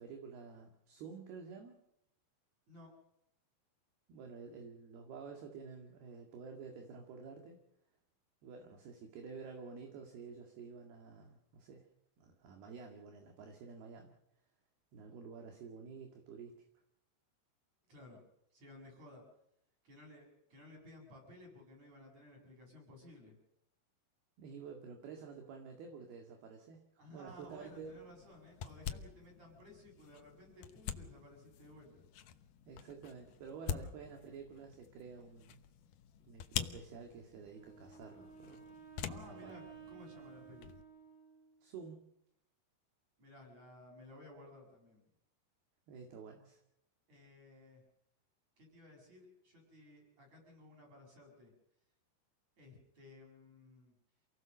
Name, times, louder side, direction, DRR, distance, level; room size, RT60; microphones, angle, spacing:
voice 1, 0.0-1.7 4.1-7.6 8.4-11.9 12.2-14.1 14.9-16.5 24.4-28.0 32.7-35.6 36.3-38.7 39.0-39.6 41.6-42.1 45.9-46.6, right 5 dB, 60° right, 3 dB, 3.9 m, -50 dB
voice 2, 17.9-18.2 18.5-19.2 19.8-23.4 27.0-32.0 33.7-33.9 38.9-40.8 43.2-45.0 47.1-47.8 48.6-51.5 52.6-54.0, left 1 dB, 35° right, 1 dB, 8.2 m, -56 dB
sound 1, 27.3-40.8, left 9 dB, 85° left, 1.8 m, -47 dB
Wind instrument woodwind instrument, 37.4-41.7, right 7 dB, 80° right, 9.5 m, -55 dB
28.5 x 17.5 x 6.5 m, 0.77 s
omnidirectional pair, 5.4 m